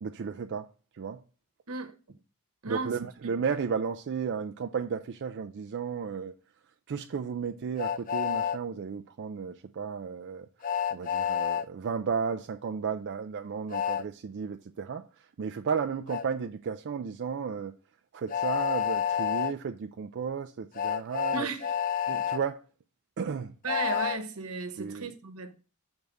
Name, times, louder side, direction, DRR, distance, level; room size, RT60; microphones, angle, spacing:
voice 1, 0.0-1.2 2.6-6.4 6.9-17.8 18.1-21.5 22.1-22.6 23.2-23.6 24.8-25.1, right 6 dB, 55° right, 0.4 m, -34 dB
voice 2, 2.6-2.9 21.3-21.7 23.6-25.5, right 4 dB, 85° right, 1.1 m, -34 dB
Train, 7.8-8.6 10.6-11.7 13.7-14.0 16.1-16.2 18.3-19.5 20.7-22.4 23.7-24.2, left 9 dB, 40° left, 0.4 m, -29 dB
6.6 x 3.5 x 6.2 m
head